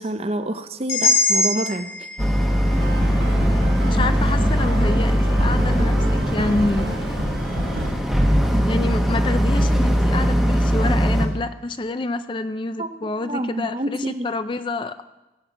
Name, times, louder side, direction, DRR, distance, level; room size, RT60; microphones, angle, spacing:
voice 1, 0.0-1.9 12.8-14.3, right 1 dB, 35° right, 10 dB, 0.7 m, -28 dB
sound 1, 0.9-4.9, left 2 dB, 65° left, 4.9 m, -25 dB
Boat Water vehicle, 2.2-11.3, equal, ahead, 1.2 m, -20 dB
sound 2, 2.7-7.9, right 1 dB, 75° right, 3.7 m, -29 dB
voice 2, 3.8-7.0 8.7-15.0, left 2 dB, 25° left, 11 dB, 0.4 m, -27 dB
16.0 x 5.6 x 8.1 m, 1.0 s
head